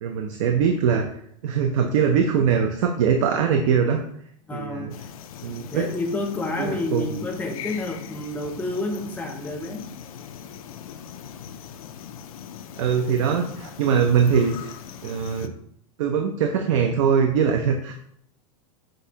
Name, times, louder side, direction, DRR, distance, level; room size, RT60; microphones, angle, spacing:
voice 1, 0.0-4.0 4.5-4.9 5.4-5.8 6.6-7.0 12.8-14.7 15.0-15.5 16.0-17.9, right 7 dB, 65° right, 4 dB, 0.5 m, -22 dB
voice 2, 4.5-4.9 5.7-9.9, left 2 dB, 10° left, 3 dB, 0.5 m, -29 dB
sound 1, 4.9-15.5, left 8 dB, 85° left, 0.4 m, -40 dB
6.2 x 2.6 x 2.8 m, 0.69 s
supercardioid pair, 150°, 18 cm